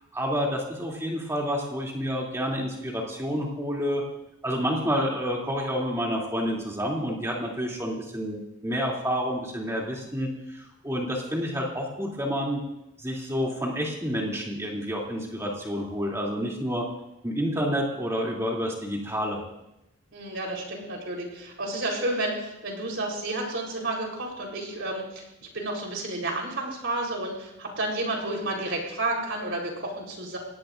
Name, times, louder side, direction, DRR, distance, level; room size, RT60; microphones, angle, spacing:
voice 1, 0.1-4.0 4.4-12.6 13.0-16.8 17.2-19.4, equal, 15° right, -2 dB, 3.0 m, -29 dB
voice 2, 20.1-25.2 25.5-30.4, right 2 dB, 60° right, 0 dB, 4.1 m, -31 dB
25.0 x 18.5 x 2.6 m, 0.87 s
head